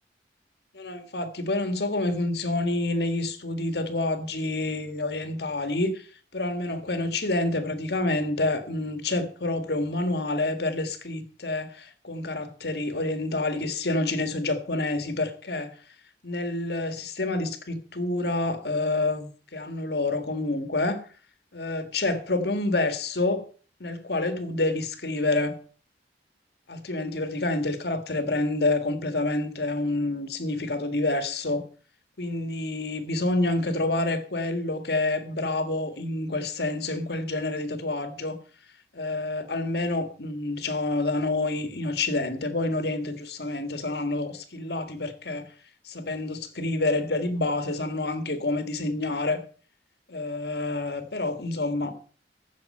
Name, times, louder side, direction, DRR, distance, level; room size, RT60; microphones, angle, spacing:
voice 1, 0.7-6.1 6.3-15.7 16.2-21.0 21.5-23.4 23.8-25.5 26.7-31.6 32.2-38.4 38.9-45.5 45.8-49.4 50.1-51.9, left 2 dB, 65° left, 1.7 m, -28 dB
15.0 x 6.5 x 5.4 m
head